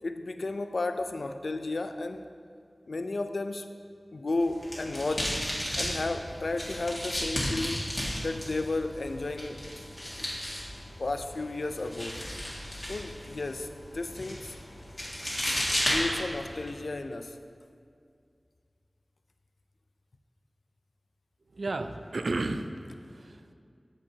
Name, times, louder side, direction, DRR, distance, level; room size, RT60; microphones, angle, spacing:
voice 1, 0.0-2.3 2.9-3.8 4.1-5.4 5.7-8.0 8.2-9.6 10.2-10.3 11.0-12.2 12.9-14.5 15.9-17.4, left 2 dB, 80° left, 8 dB, 0.4 m, -33 dB
sound 1, 4.4-16.7, equal, 30° left, 2.0 m, -34 dB
voice 2, 21.5-23.5, right 2 dB, 85° right, 8 dB, 0.4 m, -33 dB
13.5 x 5.3 x 2.8 m, 2.3 s
wide cardioid pair, 65°, 0 cm